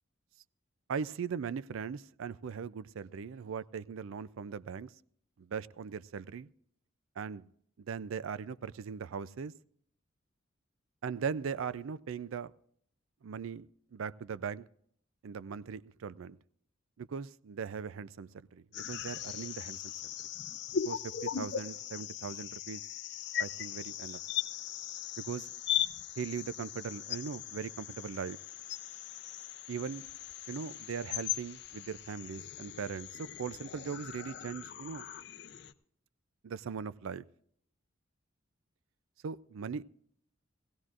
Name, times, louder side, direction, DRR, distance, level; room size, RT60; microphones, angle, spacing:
voice 1, 0.9-4.9 5.4-6.5 7.2-7.5 7.8-9.5 11.0-12.5 13.2-14.6 15.2-16.4 17.0-20.1 20.7-22.8 23.4-24.2 25.2-25.5 26.2-28.4 29.7-30.0 30.5-35.1 36.4-37.3 39.2-39.8, right 6 dB, 75° right, 0.4 m, -39 dB
sound 1, 18.7-35.7, left 10 dB, 50° left, 0.5 m, -39 dB
19.5 x 16.0 x 2.4 m
head